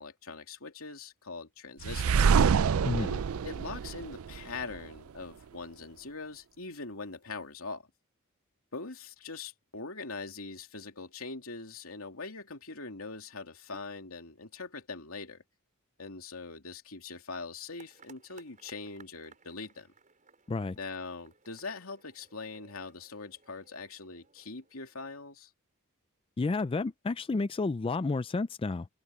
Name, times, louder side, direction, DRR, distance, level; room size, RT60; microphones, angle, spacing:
voice 1, 0.0-2.3 3.0-7.8 8.7-15.4 16.0-19.9 20.8-25.5, left 4 dB, 80° left, 3.0 m, -42 dB
sound 1, 1.8-4.8, right 6 dB, 80° right, 0.4 m, -26 dB
sound 2, 17.8-25.0, right 4 dB, 40° right, 6.3 m, -61 dB
voice 2, 26.4-28.9, left 3 dB, 25° left, 0.4 m, -31 dB
head